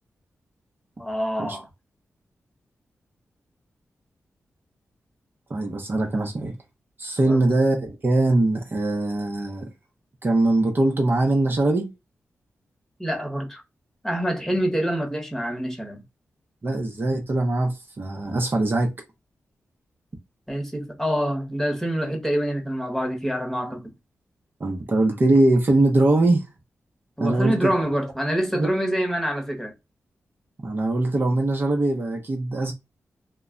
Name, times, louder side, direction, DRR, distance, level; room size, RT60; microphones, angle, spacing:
voice 1, 1.0-1.7 7.3-7.4 13.0-13.6 14.0-16.0 20.5-23.9 27.2-29.7, equal, 5° left, 1.0 m, -26 dB
voice 2, 5.5-6.5 7.0-9.7 10.2-11.9 16.6-18.9 24.6-26.4 27.2-27.7 28.5-28.7 30.6-32.7, right 2 dB, 40° right, 0.7 m, -22 dB
2.1 x 2.1 x 3.7 m
cardioid pair, 70°, 5 cm